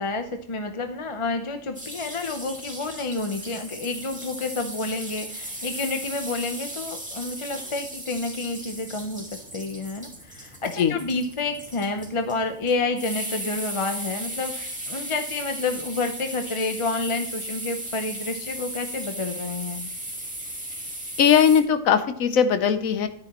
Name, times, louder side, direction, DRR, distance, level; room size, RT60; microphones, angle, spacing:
voice 1, 0.0-19.9, left 3 dB, 30° left, 6 dB, 0.6 m, -29 dB
sound 1, 1.7-21.6, right 1 dB, 5° right, 1.8 m, -36 dB
voice 2, 21.2-23.1, left 7 dB, 90° left, 10 dB, 1.2 m, -19 dB
10.5 x 9.8 x 3.0 m, 0.63 s
omnidirectional pair, 1.4 m